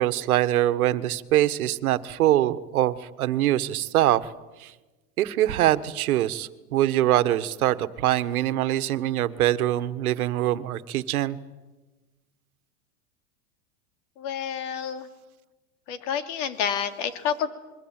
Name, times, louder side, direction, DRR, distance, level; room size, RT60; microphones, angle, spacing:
voice 1, 0.0-4.3 4.6-4.7 5.2-11.4, right 13 dB, 80° right, 13 dB, 1.5 m, -23 dB
voice 2, 14.2-15.1 15.9-17.5, left 8 dB, 55° left, 8 dB, 3.1 m, -29 dB
27.0 x 22.5 x 8.9 m, 1.2 s
supercardioid pair, 135°, 43 cm